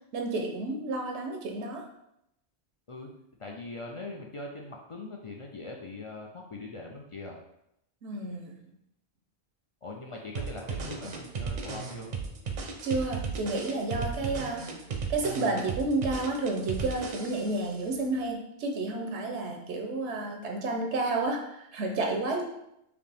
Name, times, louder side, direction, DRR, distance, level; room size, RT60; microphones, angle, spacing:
voice 1, 0.1-1.8 8.0-8.6 12.8-14.6 15.1-22.4, right 2 dB, 90° right, 2 dB, 1.0 m, -31 dB
voice 2, 3.4-7.4 9.8-12.1, left 2 dB, 50° left, 0 dB, 0.3 m, -41 dB
sound 1, 10.4-17.7, right 5 dB, 50° right, 0.6 m, -35 dB
5.0 x 2.9 x 3.3 m, 0.81 s
omnidirectional pair, 1.1 m